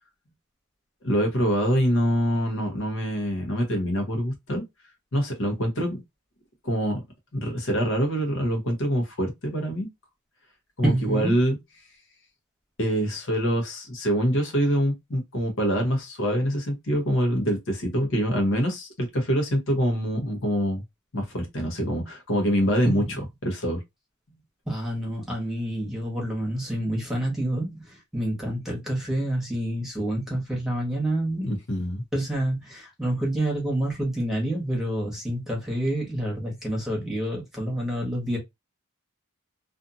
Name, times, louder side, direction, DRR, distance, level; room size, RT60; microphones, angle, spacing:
voice 1, 1.0-4.6 5.1-6.0 6.6-7.0 7.3-9.9 10.8-11.6 12.8-20.8 21.1-23.8 31.4-32.0, equal, 65° left, 1.0 m, -25 dB
voice 2, 10.8-11.4 22.8-23.2 24.7-31.5 32.1-38.4, right 1 dB, ahead, 1.1 m, -28 dB
2.6 x 2.5 x 2.6 m
head